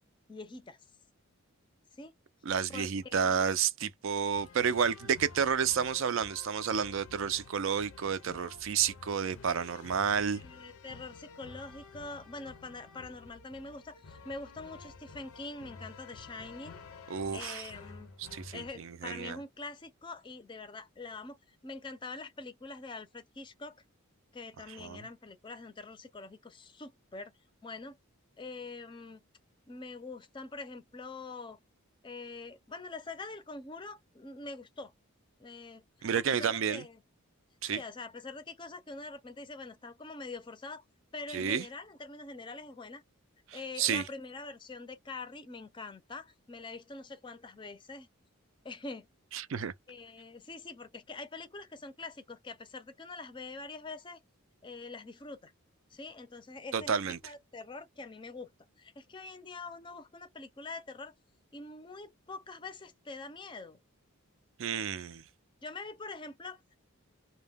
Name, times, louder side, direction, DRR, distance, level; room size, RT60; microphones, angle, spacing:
voice 1, 0.3-0.8 1.9-2.1 2.7-3.4 10.3-16.8 17.3-18.1 18.5-23.8 24.3-27.3 27.6-28.0 28.4-29.2 29.6-31.6 32.0-34.9 35.4-37.0 37.7-40.8 41.1-43.0 43.5-48.1 48.6-49.1 49.9-54.2 54.6-55.5 55.9-58.5 58.8-61.1 61.5-63.8 65.6-66.8, left 3 dB, 20° left, 0.5 m, -44 dB
voice 2, 2.5-10.4 17.1-17.7 18.2-19.4 24.8-25.0 36.0-36.8 37.6-37.8 41.3-41.7 43.5-44.0 49.3-49.7 56.7-57.2 64.6-65.2, right 7 dB, 60° right, 0.4 m, -31 dB
sound 1, 4.3-18.7, left 4 dB, 85° left, 0.6 m, -51 dB
2.2 x 2.1 x 3.3 m
head